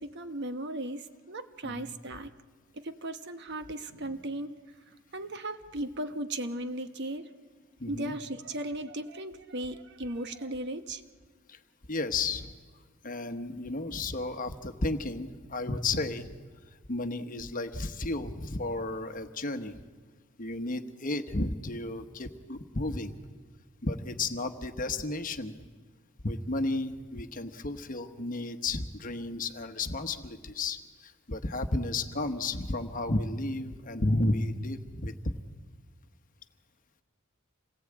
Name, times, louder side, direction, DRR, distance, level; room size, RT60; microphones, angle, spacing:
voice 1, 0.0-2.3 2.7-4.5 4.9-7.3 7.9-11.0, right 1 dB, 55° right, 9 dB, 1.1 m, -37 dB
voice 2, 1.6-1.9 7.8-8.1 11.5-11.6 11.9-12.5 13.0-16.3 16.9-19.7 20.4-23.2 23.8-25.5 26.2-35.3, left 2 dB, 40° left, 8 dB, 1.2 m, -33 dB
27.0 x 18.5 x 8.7 m, 1.5 s
head